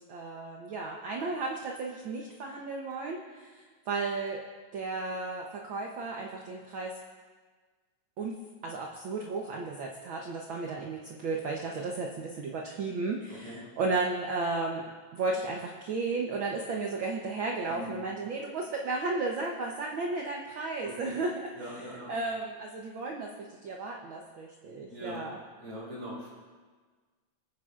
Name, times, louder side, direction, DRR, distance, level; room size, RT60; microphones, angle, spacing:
voice 1, 0.0-4.4 4.7-7.0 8.2-8.4 8.6-21.8 22.1-25.4, right 3 dB, 65° right, 0 dB, 1.2 m, -34 dB
voice 2, 20.8-22.1 24.9-25.2 25.6-26.4, equal, 90° right, -6 dB, 6.0 m, -42 dB
26.0 x 9.5 x 2.5 m, 1.4 s
omnidirectional pair, 3.3 m